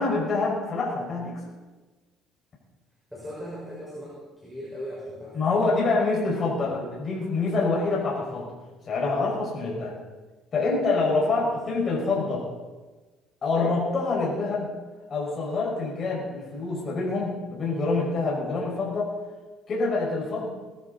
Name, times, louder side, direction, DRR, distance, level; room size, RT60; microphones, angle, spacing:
voice 1, 0.0-1.4 5.3-8.5 8.9-9.9 10.5-12.4 13.4-14.7 15.1-19.1 19.7-20.5, left 3 dB, 40° left, -4 dB, 5.7 m, -26 dB
voice 2, 3.1-5.8 6.6-6.8 11.3-11.5 11.8-12.0, equal, ahead, -7 dB, 5.2 m, -39 dB
21.0 x 12.5 x 4.2 m, 1.2 s
cardioid pair, 110°, 0 cm